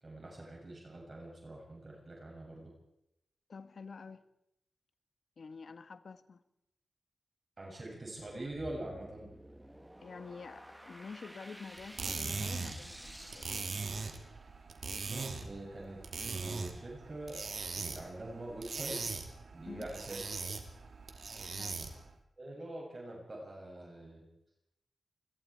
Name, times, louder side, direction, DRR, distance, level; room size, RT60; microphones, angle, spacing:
voice 1, 0.0-2.7 7.6-9.3 15.1-17.4 17.7-19.0 19.5-20.2 22.4-24.2, right 1 dB, 35° right, 7.1 m, -44 dB
voice 2, 3.5-4.2 5.4-6.4 10.0-13.7 19.6-19.9 21.6-21.8, left 5 dB, 60° left, 1.4 m, -48 dB
sound 1, 8.4-14.7, right 1 dB, 5° right, 1.0 m, -52 dB
sound 2, 11.8-22.1, right 4 dB, 65° right, 2.7 m, -40 dB
28.0 x 21.5 x 4.6 m
wide cardioid pair, 120°, 0 cm